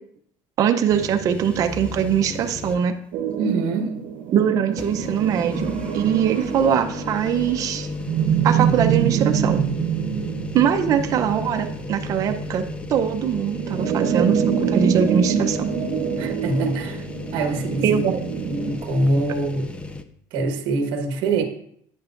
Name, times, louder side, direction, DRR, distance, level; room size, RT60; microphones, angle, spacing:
voice 1, 0.6-3.0 4.3-7.9 8.4-9.6 10.5-12.6 12.9-15.6 17.8-18.2, right 8 dB, 40° right, 5 dB, 0.6 m, -22 dB
sound 1, 0.9-3.1 3.5-3.6 4.7-20.0, left 3 dB, 15° left, 0.4 m, -34 dB
sound 2, 3.1-18.8, right 8 dB, 85° right, 0.9 m, -26 dB
voice 2, 3.3-3.9 16.2-17.0 17.3-18.1 18.5-19.7 20.3-21.4, right 2 dB, 65° right, 4 dB, 1.3 m, -24 dB
9.8 x 8.5 x 2.5 m, 0.66 s
cardioid pair, 160°, 9 cm